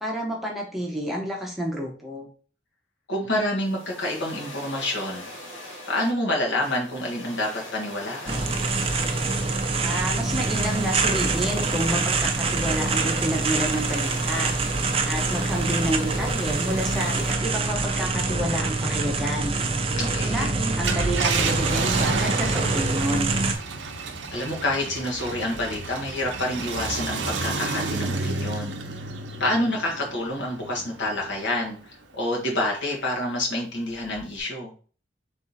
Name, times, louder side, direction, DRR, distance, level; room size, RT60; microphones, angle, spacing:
voice 1, 0.0-2.3 9.8-14.5 15.0-19.6 20.2-23.3, equal, ahead, -2 dB, 0.9 m, -29 dB
voice 2, 3.1-5.3 5.9-8.5 20.0-20.5 24.3-28.7 29.4-34.7, left 1 dB, 75° left, -1 dB, 1.4 m, -28 dB
sound 1, 3.5-17.3, left 1 dB, 90° left, 2.1 m, -40 dB
sound 2, 8.3-23.5, right 3 dB, 30° right, 0.5 m, -25 dB
Car, 20.7-31.5 32.0-32.1 34.2-34.4, right 4 dB, 75° right, 0.7 m, -31 dB
3.7 x 3.3 x 4.1 m, 0.40 s
head